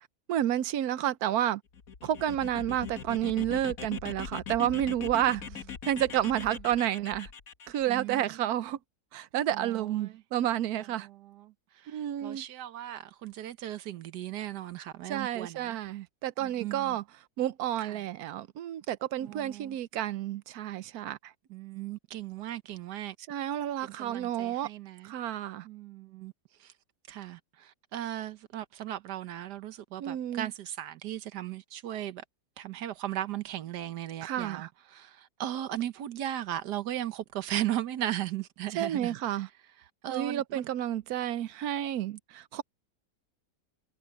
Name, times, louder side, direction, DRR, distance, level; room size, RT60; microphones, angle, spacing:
voice 1, 0.3-1.6 2.0-5.4 5.8-7.3 7.7-8.8 9.1-11.1 11.9-12.4 15.1-17.0 17.4-21.3 23.3-24.7 25.0-25.7 30.0-30.5 34.2-34.7 38.7-39.5 40.1-42.6, right 12 dB, 70° right, 1.2 m, -30 dB
sound 1, 1.7-7.8, left 7 dB, 60° left, 1.8 m, -41 dB
voice 2, 7.9-8.5 9.5-10.2 11.0-15.8 16.4-17.0 17.8-18.0 19.2-19.8 21.5-23.1 23.8-25.1 25.6-26.3 26.6-26.7 27.1-32.2 32.6-39.2 40.0-40.7, right 12 dB, 85° right, 1.5 m, -37 dB
omnidirectional pair, 1.7 m